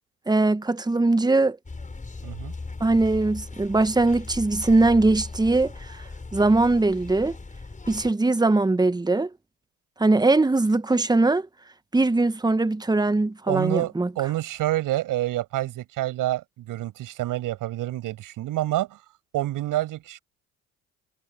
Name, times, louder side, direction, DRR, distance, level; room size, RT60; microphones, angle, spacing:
voice 1, 0.3-1.6 2.8-6.0 6.3-7.4 7.9-9.3 10.0-11.5 11.9-14.1, right 2 dB, 10° right, 1.4 m, -21 dB
sound 1, 1.6-8.1, left 3 dB, 20° left, 6.7 m, -38 dB
voice 2, 2.2-2.5 13.5-19.0 19.3-20.2, right 15 dB, 60° right, 7.4 m, -28 dB
hypercardioid pair, 60°, 36 cm